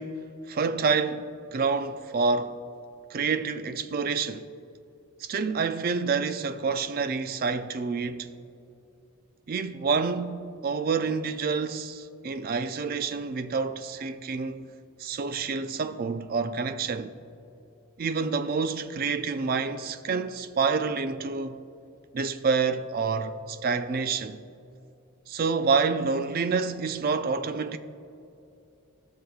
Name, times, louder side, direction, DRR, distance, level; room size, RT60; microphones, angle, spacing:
voice 1, 0.0-2.5 3.1-4.5 5.2-8.3 9.5-14.7 15.0-17.1 18.0-21.7 22.1-24.4 25.3-27.8, right 5 dB, 40° right, 0.4 m, -28 dB
18.5 x 6.3 x 2.4 m
head